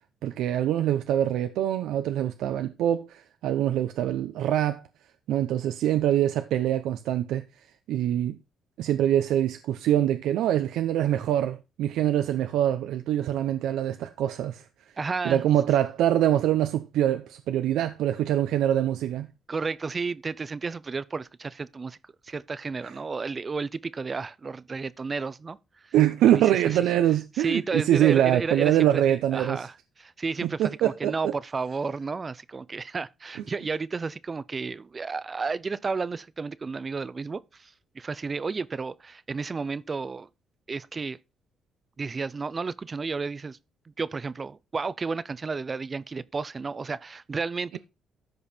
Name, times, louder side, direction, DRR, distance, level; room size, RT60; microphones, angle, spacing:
voice 1, 0.2-4.8 5.3-7.4 7.9-8.4 8.8-14.6 15.2-19.3 22.8-22.9 25.9-29.7 30.4-31.1, right 11 dB, 85° right, 0.7 m, -24 dB
voice 2, 15.0-15.4 19.5-22.0 22.2-25.6 25.8-25.9 26.4-26.8 27.4-29.0 29.3-40.3 40.7-41.2 42.0-43.6 44.0-47.8, right 4 dB, 35° right, 0.6 m, -32 dB
13.5 x 5.3 x 4.4 m
cardioid pair, 90°, 0 cm